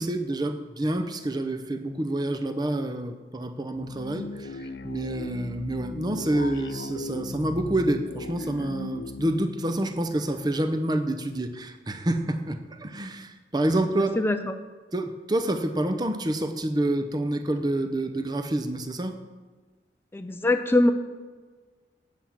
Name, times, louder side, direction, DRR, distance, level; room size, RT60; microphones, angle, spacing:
voice 1, 0.0-14.2 14.9-19.1, right 1 dB, 25° right, 8 dB, 0.7 m, -28 dB
sound 1, 3.7-10.9, left 3 dB, 70° left, 0.5 m, -38 dB
voice 2, 14.0-14.4 20.1-20.9, left 2 dB, 15° left, 7 dB, 0.4 m, -22 dB
9.2 x 5.8 x 7.4 m, 1.4 s
head